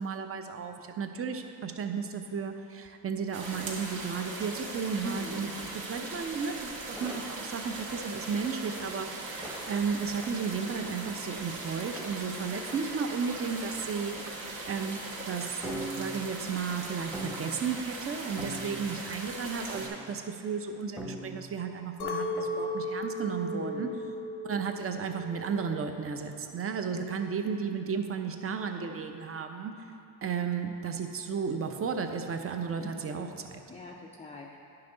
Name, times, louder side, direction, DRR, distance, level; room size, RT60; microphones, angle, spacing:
voice 1, 0.0-14.2 14.7-15.0 15.3-15.6 15.9-23.9 24.4-29.7 30.2-33.6, right 6 dB, 35° right, 6 dB, 0.6 m, -34 dB
sound 1, 3.3-19.9, right 2 dB, 70° right, 1.5 m, -40 dB
voice 2, 5.0-5.5 23.4-24.0 32.8-33.4 33.7-34.6, left 2 dB, 15° left, -1 dB, 0.4 m, -42 dB
sound 2, 7.0-8.1 9.4-10.5 11.8-13.4 14.1-14.3 14.7-15.0 15.6-16.4 17.1-17.6 18.4-19.1 19.7-20.1 21.0-21.6 22.4-22.6, right 1 dB, 5° right, 0.8 m, -41 dB
Chink clink, 22.0-26.4 26.7-27.3, left 1 dB, 85° left, 0.9 m, -36 dB
9.9 x 5.8 x 3.8 m, 2.7 s
cardioid pair, 105°, 39 cm